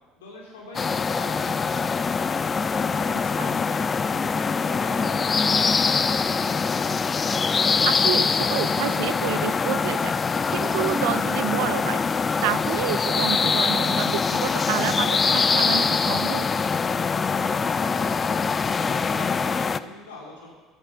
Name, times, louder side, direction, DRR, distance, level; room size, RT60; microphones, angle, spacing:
voice 1, 0.2-2.2 17.1-20.5, left 1 dB, 90° left, -2 dB, 2.9 m, -43 dB
sound 1, 0.7-19.8, left 5 dB, 30° left, 0.4 m, -23 dB
voice 2, 3.1-3.5 7.9-10.2 10.5-12.0 12.4-16.5, right 16 dB, 75° right, 16 dB, 0.4 m, -29 dB
sound 2, 4.7-15.2, right 3 dB, 45° right, 3.1 m, -46 dB
8.9 x 7.6 x 6.4 m, 1.4 s
hypercardioid pair, 75°, 0 cm